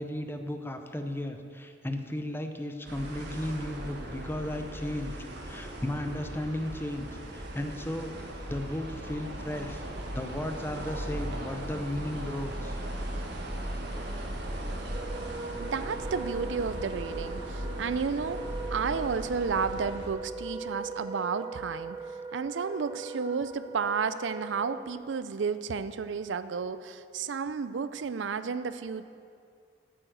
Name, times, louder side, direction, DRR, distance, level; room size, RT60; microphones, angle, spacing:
voice 1, 0.0-5.2 5.4-8.1 8.5-9.8 10.1-12.8, left 1 dB, 15° left, 6 dB, 0.7 m, -35 dB
sound 1, 2.9-20.1, right 1 dB, 65° right, 1.5 m, -38 dB
Wind instrument woodwind instrument, 14.8-24.9, right 4 dB, 25° right, 0.8 m, -40 dB
voice 2, 15.6-18.4 18.7-22.0 22.3-29.1, right 5 dB, 80° right, 13 dB, 0.5 m, -32 dB
9.2 x 8.6 x 7.9 m, 2.3 s
head